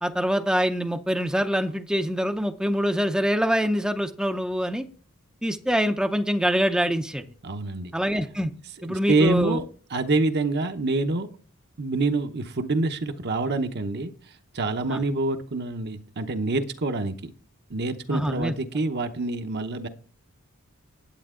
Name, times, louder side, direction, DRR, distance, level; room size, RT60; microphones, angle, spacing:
voice 1, 0.0-4.9 5.4-7.2 7.9-8.5 8.8-9.6 14.9-15.0 18.1-18.5, equal, 5° right, 6 dB, 0.6 m, -25 dB
voice 2, 7.4-7.9 8.8-9.6 9.9-11.3 11.8-14.1 14.5-17.3 17.7-19.9, right 2 dB, 50° right, 7 dB, 0.9 m, -26 dB
10.5 x 8.4 x 3.7 m, 0.43 s
head